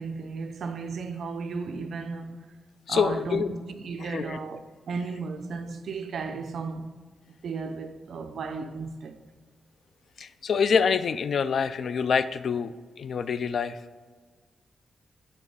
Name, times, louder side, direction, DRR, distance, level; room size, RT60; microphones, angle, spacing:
voice 1, 0.0-2.5 2.9-4.6 4.9-6.9 7.4-9.2, right 4 dB, 60° right, 0.5 m, -34 dB
voice 2, 2.9-3.5 4.0-4.4 10.2-13.8, left 6 dB, 60° left, 0.3 m, -26 dB
7.2 x 3.3 x 5.4 m
wide cardioid pair, 140°, 0 cm